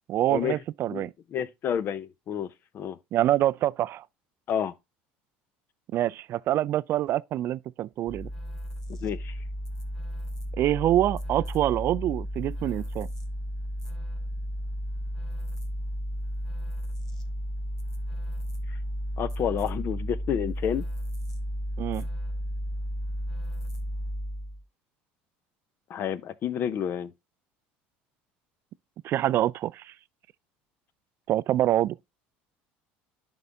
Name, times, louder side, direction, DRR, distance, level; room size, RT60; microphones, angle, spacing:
voice 1, 0.1-1.1 3.1-4.0 5.9-8.3 10.6-13.1 21.8-22.1 29.0-29.9 31.3-32.0, right 13 dB, 50° right, 0.3 m, -26 dB
voice 2, 0.9-2.5 2.7-3.0 4.5-4.7 9.0-9.3 19.2-20.8 25.9-27.1, left 9 dB, 50° left, 0.7 m, -29 dB
sound 1, 8.1-24.6, equal, 10° left, 1.7 m, -33 dB
11.0 x 3.9 x 3.4 m
supercardioid pair, 90°, 5 cm